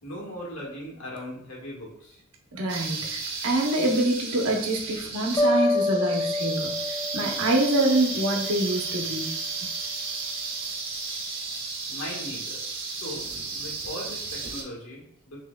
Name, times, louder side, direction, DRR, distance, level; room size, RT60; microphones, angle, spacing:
voice 1, 0.0-2.2 11.9-12.6 12.9-13.3 13.5-15.4, equal, 80° left, -4 dB, 1.5 m, -38 dB
voice 2, 2.5-9.3 9.6-9.7, right 2 dB, 80° right, 1 dB, 0.9 m, -26 dB
sound 1, 2.7-14.6, right 4 dB, 55° right, 0.9 m, -34 dB
sound 2, 5.4-8.5, left 2 dB, 15° left, 0.5 m, -27 dB
5.5 x 3.1 x 2.3 m, 0.69 s
head